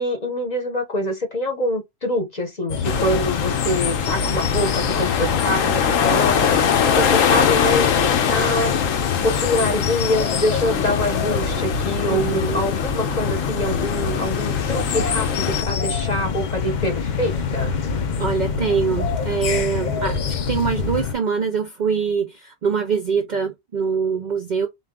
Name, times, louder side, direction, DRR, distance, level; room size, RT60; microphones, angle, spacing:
voice 1, 0.0-8.7 9.2-17.8, left 1 dB, 40° left, 0.8 m, -25 dB
sound 1, 2.7-21.1, left 5 dB, 55° left, 0.5 m, -25 dB
sound 2, 2.8-15.6, left 8 dB, 85° left, 1.1 m, -23 dB
voice 2, 12.1-12.6 18.2-24.7, right 6 dB, 55° right, 0.5 m, -24 dB
3.7 x 2.3 x 3.6 m
omnidirectional pair, 1.3 m